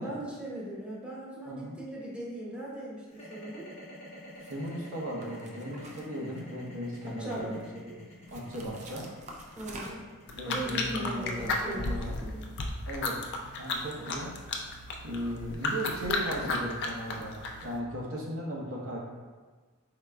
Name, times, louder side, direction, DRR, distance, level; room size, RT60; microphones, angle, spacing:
voice 1, 0.0-3.7 7.1-7.6 9.5-10.0 10.5-12.4 14.0-14.1, right 1 dB, 5° right, -6 dB, 0.8 m, -39 dB
voice 2, 1.4-1.8 4.5-9.1 10.3-12.2 12.9-13.3 13.6-14.4 15.0-19.0, equal, 70° right, -3 dB, 0.8 m, -37 dB
sound 1, 3.1-13.3, left 1 dB, 30° left, 0.8 m, -49 dB
sound 2, 4.3-4.7 5.2-6.7 7.0-7.6 8.3-10.2, right 2 dB, 30° right, 0.4 m, -47 dB
sound 3, 10.3-17.8, left 2 dB, 50° left, 0.4 m, -34 dB
4.6 x 3.7 x 2.2 m, 1.4 s
head